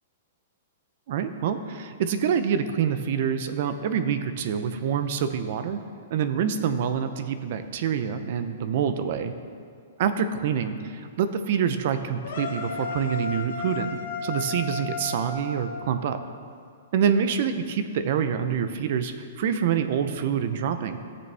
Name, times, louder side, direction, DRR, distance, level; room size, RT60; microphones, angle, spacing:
voice 1, 1.1-5.8 6.1-9.3 10.0-16.2 16.9-21.0, right 7 dB, 50° right, 10 dB, 0.6 m, -26 dB
sound 1, 12.2-16.3, left 4 dB, 75° left, 1.8 m, -34 dB
14.5 x 6.9 x 3.4 m, 2.2 s
hypercardioid pair, 165°, 0 cm